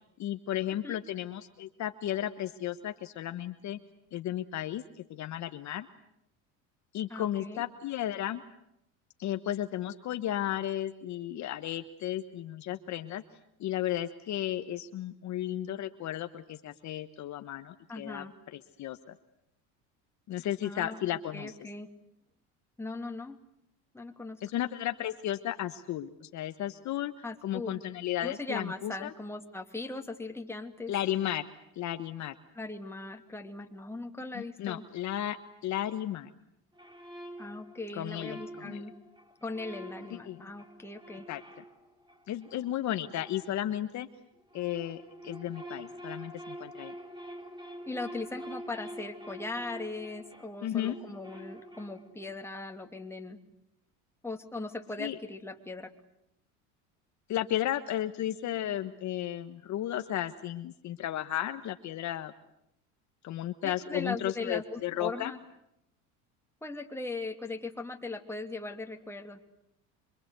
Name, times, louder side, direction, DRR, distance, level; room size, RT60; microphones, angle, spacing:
voice 1, 0.2-3.8 4.1-5.9 6.9-8.4 9.2-13.2 13.6-18.3 18.5-19.2 20.3-21.6 24.4-27.1 27.4-29.1 30.9-31.5 31.8-32.3 34.3-35.4 35.6-36.3 37.9-38.9 40.2-40.4 41.3-41.4 42.3-44.1 44.5-46.9 50.6-51.0 55.0-55.2 57.3-62.3 63.2-65.3, left 12 dB, 50° left, 9 dB, 1.3 m, -34 dB
voice 2, 7.1-7.6 17.9-18.3 20.6-21.9 22.8-23.4 23.9-24.4 27.2-27.8 28.2-30.9 32.5-34.8 37.4-38.9 39.4-41.3 47.9-53.4 54.2-55.9 63.6-65.4 66.6-69.4, left 2 dB, 5° left, 4 dB, 2.7 m, -39 dB
sound 1, 36.7-44.0 44.4-52.3, right 1 dB, 10° right, 4.3 m, -47 dB
26.5 x 24.5 x 8.2 m, 0.80 s
supercardioid pair, 105°, 38 cm